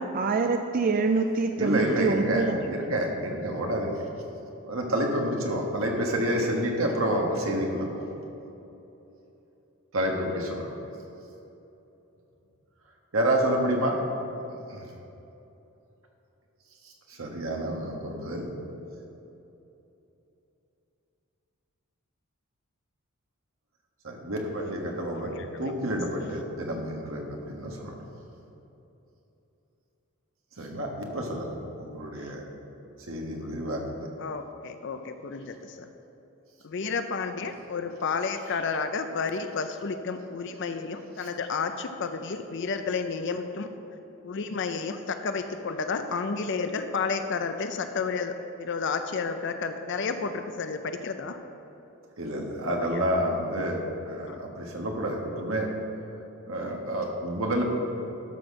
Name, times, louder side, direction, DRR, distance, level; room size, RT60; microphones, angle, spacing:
voice 1, 0.0-2.6, right 4 dB, 40° right, 6 dB, 0.3 m, -25 dB
voice 2, 1.6-2.5 2.7-4.0 4.7-8.0 9.9-10.6 13.1-14.0 16.8-18.5 24.0-27.9 30.6-32.4 33.1-33.8 52.2-53.8 54.0-55.7 56.4-57.6, right 1 dB, 65° right, 1 dB, 1.4 m, -29 dB
voice 3, 25.1-25.8 32.2-32.3 34.2-35.9 36.6-43.7 44.2-51.4 54.3-54.4 56.6-56.7, left 5 dB, 55° left, 8 dB, 0.5 m, -31 dB
12.5 x 4.3 x 6.3 m, 3.0 s
head